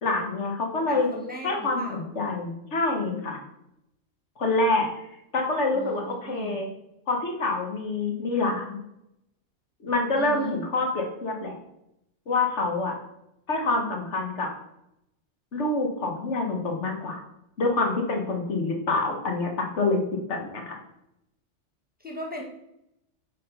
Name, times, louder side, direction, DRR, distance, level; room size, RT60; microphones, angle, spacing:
voice 1, 0.0-1.1 1.4-3.4 4.4-4.9 5.3-6.7 7.1-8.8 9.8-11.6 12.3-12.9 13.5-14.5 15.5-17.2 17.6-20.0 20.3-20.8, left 3 dB, 70° left, 2 dB, 1.5 m, -26 dB
voice 2, 0.9-2.1 5.7-6.0 6.3-6.6 10.2-10.5 22.0-22.4, right 1 dB, 10° right, -1 dB, 1.2 m, -37 dB
6.4 x 3.8 x 5.4 m, 0.83 s
omnidirectional pair, 1.3 m